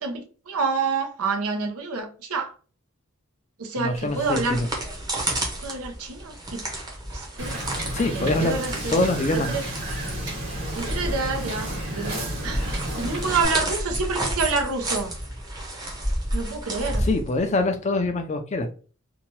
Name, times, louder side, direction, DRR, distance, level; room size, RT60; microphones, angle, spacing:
voice 1, 0.0-2.5 3.6-4.6 5.6-6.7 7.1-7.6 8.1-9.0 9.3-9.6 10.8-12.6 13.0-15.1 16.3-17.1, right 4 dB, 90° right, 0.7 m, -28 dB
voice 2, 3.8-4.4 7.9-8.5 8.9-9.5 17.0-18.7, left 2 dB, 30° left, 0.4 m, -24 dB
sound 1, 3.9-17.7, right 1 dB, 20° right, 0.7 m, -31 dB
Wind / Boat Water vehicle, 7.4-13.5, right 1 dB, 60° right, 1.4 m, -31 dB
2.8 x 2.2 x 3.0 m
head